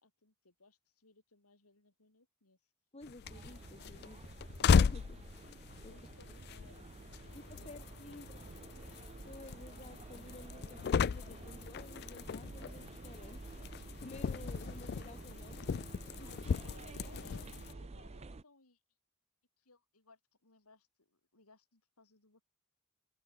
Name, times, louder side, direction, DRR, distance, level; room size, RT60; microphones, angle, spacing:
voice 1, 0.0-2.6 5.9-8.9 16.6-18.8 19.6-22.4, left 3 dB, 90° left, 3.9 m, -63 dB
voice 2, 2.9-4.2 4.7-5.9 7.3-8.4 9.2-13.4 14.0-15.8 16.1-16.4, left 2 dB, 30° left, 1.8 m, -53 dB
sound 1, 3.0-17.7, left 6 dB, 50° left, 0.3 m, -36 dB
sound 2, 3.3-18.4, right 3 dB, 30° right, 0.5 m, -50 dB
head